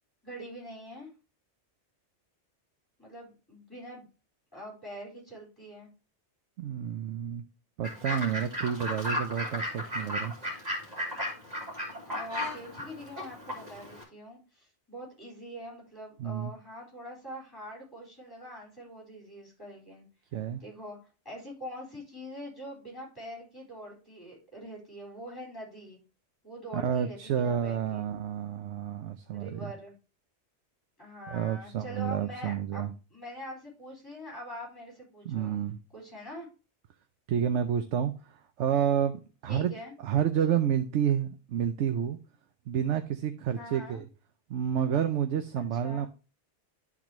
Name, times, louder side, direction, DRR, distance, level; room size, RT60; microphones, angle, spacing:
voice 1, 0.2-1.1 3.0-4.1 4.5-5.9 12.1-20.0 20.6-21.0 21.2-26.0 26.4-28.1 29.4-29.9 31.0-35.5 35.9-36.5 39.5-39.9 43.5-44.0 45.6-46.1, equal, 20° left, 4.2 m, -44 dB
voice 2, 6.6-7.4 7.8-10.3 16.2-16.5 20.3-20.6 26.7-29.7 31.3-32.9 35.2-35.8 37.3-38.1 38.6-39.7 40.0-42.2 42.7-44.1 44.5-46.1, right 9 dB, 85° right, 0.9 m, -29 dB
Fowl / Bird, 7.8-14.0, left 1 dB, 35° right, 2.6 m, -35 dB
12.0 x 4.0 x 2.9 m
omnidirectional pair, 1.2 m